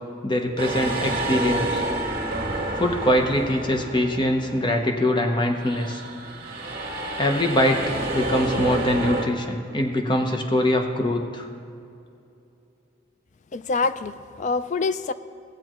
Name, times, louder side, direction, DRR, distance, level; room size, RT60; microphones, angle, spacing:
voice 1, 0.2-1.8 2.8-6.0 7.2-11.5, left 1 dB, 25° left, 4 dB, 0.9 m, -23 dB
sound 1, 0.6-5.1 5.5-9.2, right 2 dB, 50° right, 1.9 m, -29 dB
voice 2, 13.5-15.1, left 4 dB, 40° left, 13 dB, 0.3 m, -26 dB
18.0 x 7.6 x 3.1 m, 2.7 s
head